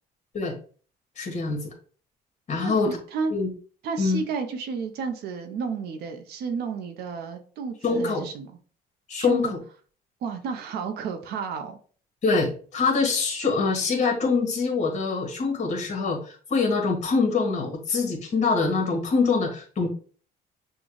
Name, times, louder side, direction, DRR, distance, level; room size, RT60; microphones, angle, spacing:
voice 1, 1.2-1.7 2.5-2.9 3.3-3.5 4.0-4.2 7.8-8.2 9.1-9.6 12.2-19.9, left 4 dB, 45° left, 3 dB, 1.5 m, -24 dB
voice 2, 2.6-3.3 3.8-8.6 9.2-9.5 10.2-11.8, right 5 dB, 75° right, 6 dB, 0.7 m, -32 dB
6.3 x 2.3 x 3.2 m, 0.41 s
cardioid pair, 110°, 17 cm